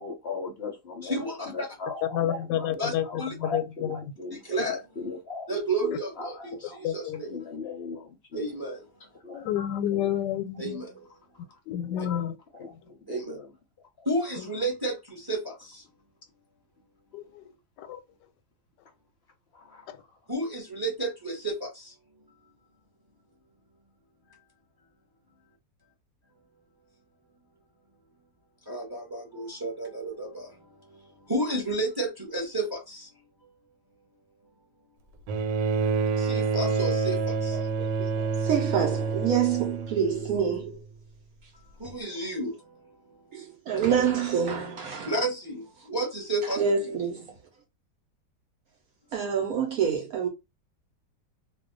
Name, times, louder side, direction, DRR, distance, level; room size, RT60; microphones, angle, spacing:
voice 1, 0.0-5.5 5.8-6.8 7.2-8.5 9.2-9.5 9.9-10.1 11.8-12.0 12.5-13.5 14.0-14.1 19.5-19.8, left 4 dB, 60° left, 0.6 m, -39 dB
voice 2, 1.0-1.7 2.8-2.9 3.2-3.3 4.3-4.8 5.5-7.3 8.3-8.8 10.6-11.0 13.1-13.4 14.0-15.8 20.3-21.9 28.7-33.1 36.2-37.6 41.8-42.8 45.1-46.6, right 1 dB, 20° right, 0.7 m, -31 dB
voice 3, 2.1-3.1 3.4-4.0 6.8-7.2 9.3-10.8 11.7-12.4 17.1-17.5 17.8-18.0 19.9-20.0, left 11 dB, 90° left, 1.2 m, -29 dB
Bowed string instrument, 35.3-40.7 41.8-41.9, right 4 dB, 85° right, 1.3 m, -28 dB
voice 4, 37.5-40.8 43.3-45.1 45.8-45.9 46.4-47.3 49.1-50.3, right 7 dB, 65° right, 1.0 m, -27 dB
2.6 x 2.2 x 3.7 m
omnidirectional pair, 1.9 m